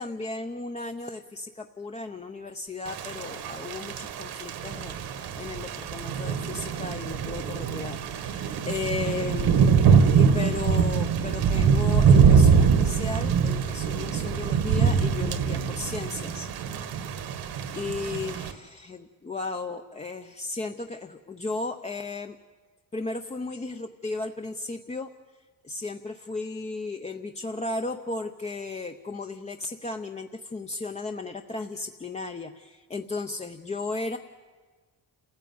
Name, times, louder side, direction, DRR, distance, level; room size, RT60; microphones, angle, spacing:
voice 1, 0.0-9.7 10.1-17.1 17.7-22.4 22.9-25.1 25.6-34.2, left 3 dB, 15° left, 5 dB, 0.7 m, -35 dB
Thunder / Rain, 2.9-18.5, right 6 dB, 80° right, 1.7 m, -23 dB
28.5 x 15.0 x 9.4 m, 1.4 s
cardioid pair, 155°, 38 cm